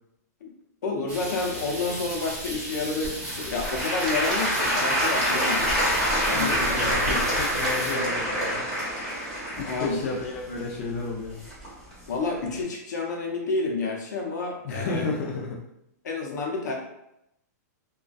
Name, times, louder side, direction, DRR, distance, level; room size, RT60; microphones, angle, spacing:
voice 1, 0.8-5.7 6.2-7.3 9.6-10.0 12.1-15.1 16.0-16.7, left 3 dB, 80° left, 0 dB, 0.7 m, -30 dB
sound 1, 1.1-7.9, equal, 25° right, 1.3 m, -35 dB
Applause / Crowd, 3.0-11.9 12.5-12.6, equal, 5° left, 1.1 m, -26 dB
voice 2, 6.1-7.0 7.4-8.7 9.6-11.4 14.6-15.6, left 3 dB, 45° left, -2 dB, 0.4 m, -32 dB
2.5 x 2.2 x 2.3 m, 0.82 s
hypercardioid pair, 160°, 9 cm